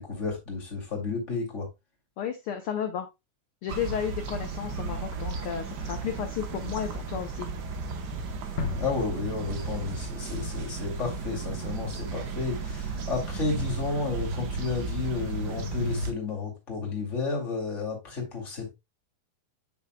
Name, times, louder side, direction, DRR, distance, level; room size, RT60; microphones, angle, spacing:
voice 1, 0.0-1.7 8.7-18.7, left 4 dB, 25° left, 2.4 m, -32 dB
voice 2, 2.2-3.1 3.6-7.5, left 9 dB, 80° left, 1.2 m, -33 dB
sound 1, 3.7-16.1, right 3 dB, 90° right, 0.9 m, -34 dB
sound 2, 8.6-11.4, left 5 dB, 60° left, 1.1 m, -37 dB
8.6 x 6.2 x 2.2 m
omnidirectional pair, 3.4 m